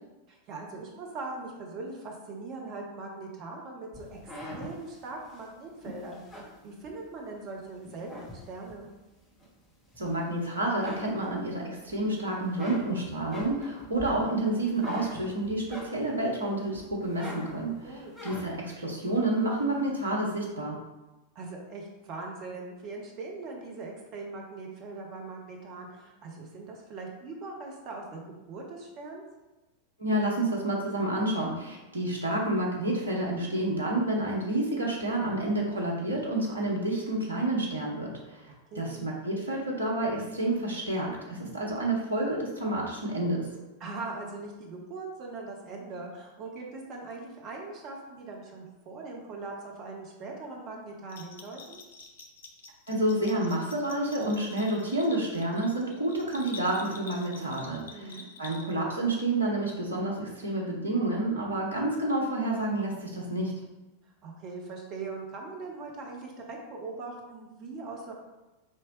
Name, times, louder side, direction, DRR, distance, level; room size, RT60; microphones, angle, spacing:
voice 1, 0.3-8.9 17.8-18.1 21.3-29.2 38.5-39.1 43.8-51.8 57.9-58.3 64.0-68.1, right 3 dB, 35° right, 0 dB, 0.8 m, -41 dB
sound 1, 3.9-7.4 7.8-8.9 9.4-10.4 10.7-11.9 12.3-16.3 16.7-18.7, equal, ahead, 1.3 m, -43 dB
voice 2, 10.0-20.8 30.0-43.5 52.9-63.5, right 1 dB, 75° right, -2 dB, 1.0 m, -29 dB
Bell, 51.1-59.0, left 4 dB, 60° left, 0.5 m, -48 dB
4.4 x 2.9 x 3.1 m, 1.1 s
figure-of-eight pair, 90°, 0 cm